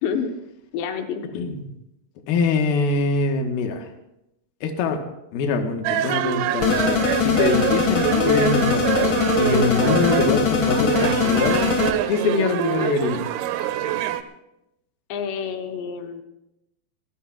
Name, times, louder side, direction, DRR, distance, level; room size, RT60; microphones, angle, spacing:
voice 1, 0.7-1.3 15.1-16.2, left 7 dB, 90° left, 5 dB, 3.4 m, -28 dB
voice 2, 2.3-3.9 4.6-5.0 5.3-11.7 12.1-13.2, left 4 dB, 70° left, 3 dB, 3.0 m, -24 dB
Chinatown Band Tune Up, 5.8-14.2, right 12 dB, 80° right, 2.6 m, -25 dB
sound 1, 6.6-11.9, left 5 dB, 50° left, 1.6 m, -21 dB
24.5 x 18.0 x 2.4 m, 0.86 s
omnidirectional pair, 4.8 m